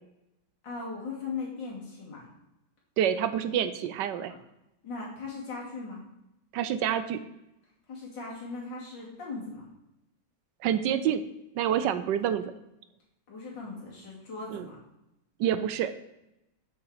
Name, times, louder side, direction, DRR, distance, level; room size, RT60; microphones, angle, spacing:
voice 1, 0.6-2.3 4.8-6.0 7.9-9.6 11.8-12.1 13.3-14.8, left 4 dB, 70° left, -4 dB, 3.3 m, -39 dB
voice 2, 3.0-4.3 6.5-7.2 10.6-11.2 11.5-12.5 14.5-14.7 15.4-15.9, right 9 dB, 75° right, 11 dB, 1.2 m, -27 dB
8.0 x 6.8 x 4.8 m, 0.89 s
omnidirectional pair, 2.0 m